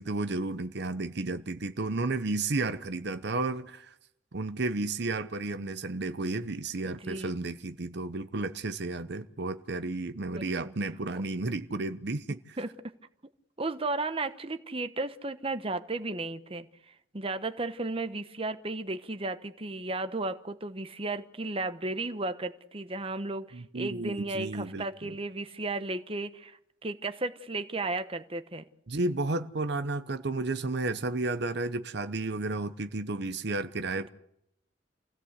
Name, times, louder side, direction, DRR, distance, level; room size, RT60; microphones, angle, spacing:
voice 1, 0.0-3.9 4.3-12.6 23.5-25.1 28.9-34.1, right 2 dB, 60° right, 0.8 m, -32 dB
voice 2, 6.9-7.3 10.3-10.7 12.6-12.9 13.6-28.7 34.0-34.1, right 2 dB, 30° right, 1.0 m, -34 dB
28.0 x 16.5 x 8.2 m
head